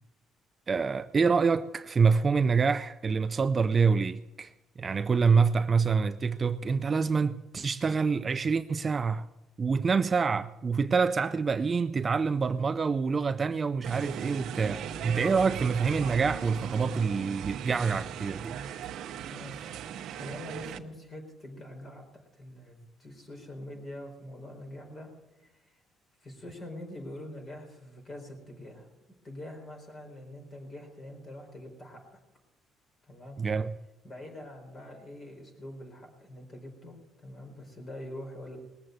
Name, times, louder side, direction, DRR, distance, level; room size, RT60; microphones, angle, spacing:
voice 1, 0.7-4.5 4.8-9.3 9.6-18.6 33.4-33.7, right 5 dB, 25° right, 0.4 m, -26 dB
sound 1, 13.8-20.8, right 9 dB, 70° right, 0.8 m, -38 dB
voice 2, 19.2-19.7 20.2-25.1 25.4-25.8 26.2-28.9 29.2-32.2 33.0-33.4 34.0-38.6, left 1 dB, 35° left, 4.6 m, -44 dB
20.0 x 7.7 x 8.1 m
cardioid pair, 145°, 0 cm